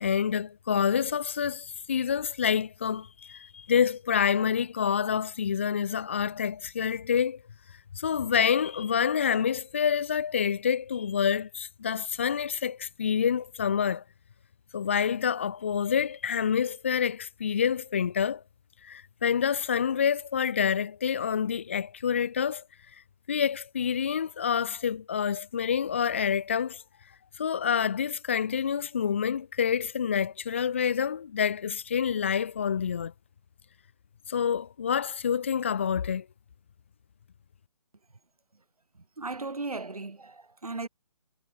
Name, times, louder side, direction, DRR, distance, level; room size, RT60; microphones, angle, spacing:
voice 1, 0.0-7.4 7.9-14.0 14.7-18.4 18.8-22.6 23.3-26.8 27.4-33.1 34.3-36.3, left 7 dB, 20° left, 0.4 m, -27 dB
voice 2, 38.9-40.9, right 3 dB, 70° right, 7.8 m, -37 dB
figure-of-eight pair, 150°, 19 cm